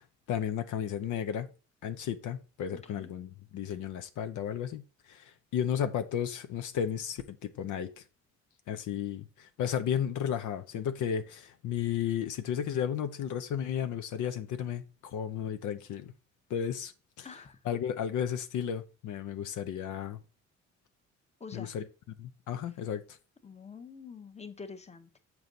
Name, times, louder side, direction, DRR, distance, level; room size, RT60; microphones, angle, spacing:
voice 1, 0.0-1.5 1.8-8.0 8.7-16.1 16.5-16.9 17.2-17.3 17.6-20.2 21.5-21.9 22.2-23.2, left 9 dB, 75° left, 0.6 m, -33 dB
voice 2, 2.7-3.1 17.2-17.6 21.4-21.7 23.4-25.1, left 5 dB, 20° left, 0.9 m, -46 dB
6.9 x 4.6 x 3.9 m
cardioid pair, 90°, 30 cm